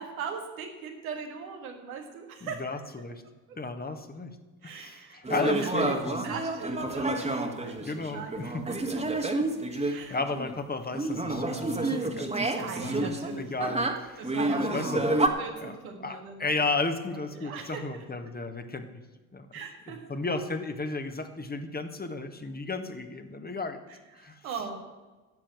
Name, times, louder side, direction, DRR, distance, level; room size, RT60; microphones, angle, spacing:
voice 1, 0.0-2.6 4.6-9.3 9.9-10.2 12.5-13.7 14.2-15.0 15.3-16.6 17.3-18.0 19.5-20.1 23.9-24.8, right 6 dB, 85° right, 2 dB, 1.9 m, -40 dB
voice 2, 2.4-3.2 3.6-4.4 4.6-6.3 7.8-8.6 9.7-13.9 14.1-14.3 14.7-15.3 15.6-15.7 16.0-19.0 19.3-19.5 19.9-23.8 24.2-24.4, left 3 dB, 20° left, 7 dB, 1.6 m, -34 dB
sound 1, 5.2-10.5 10.9-15.3, right 2 dB, 15° right, 1.8 m, -29 dB
11.0 x 7.4 x 8.9 m, 1.2 s
hypercardioid pair, 55°, 41 cm